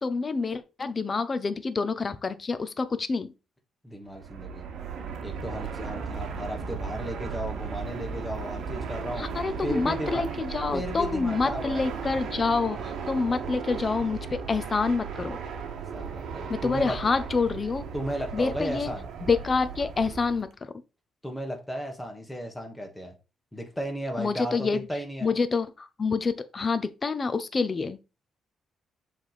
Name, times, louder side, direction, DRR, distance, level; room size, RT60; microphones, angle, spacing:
voice 1, 0.0-3.3 9.2-14.2 14.5-15.4 16.5-17.9 18.3-18.9 19.2-20.5 24.2-24.9 25.2-28.0, left 4 dB, 30° left, 0.6 m, -27 dB
voice 2, 3.8-4.7 5.2-9.3 9.6-10.3 10.7-11.8 15.9-17.0 17.9-19.1 21.2-23.1 23.5-25.3, equal, 5° left, 1.6 m, -34 dB
Fixed-wing aircraft airplane, 4.1-20.5, right 6 dB, 70° right, 1.1 m, -36 dB
7.4 x 3.4 x 4.1 m
cardioid pair, 130°, 0 cm